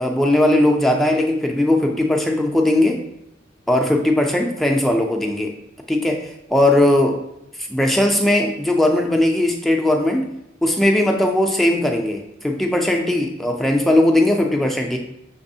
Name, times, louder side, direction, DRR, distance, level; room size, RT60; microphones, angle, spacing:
voice 1, 0.0-3.0 3.7-5.5 5.9-7.2 7.6-10.3 10.6-15.0, left 1 dB, ahead, 1 dB, 0.3 m, -18 dB
6.0 x 3.3 x 2.7 m, 0.84 s
head